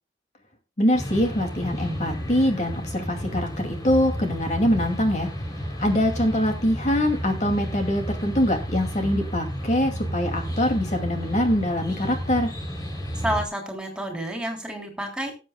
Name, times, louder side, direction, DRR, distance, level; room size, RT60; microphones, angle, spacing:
voice 1, 0.8-5.3 5.8-12.5, left 1 dB, 40° left, 4 dB, 2.3 m, -23 dB
sound 1, 0.9-13.5, equal, 20° left, 3.2 m, -32 dB
voice 2, 13.2-15.3, right 1 dB, 5° right, 2 dB, 3.3 m, -29 dB
19.0 x 8.1 x 2.2 m, 0.31 s
head